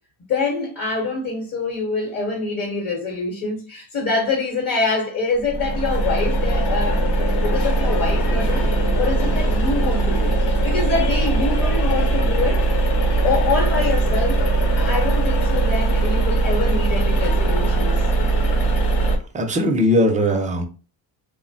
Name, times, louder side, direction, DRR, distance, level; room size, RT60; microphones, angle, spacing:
voice 1, 0.3-8.7 9.0-12.6 13.2-14.4 14.8-18.1, left 3 dB, 40° left, 0.9 m, -25 dB
sound 1, 5.4-19.2, right 2 dB, 65° left, 0.9 m, -20 dB
voice 2, 19.3-20.7, equal, 20° right, 0.4 m, -19 dB
3.2 x 2.1 x 2.6 m
cardioid pair, 120°, 45 cm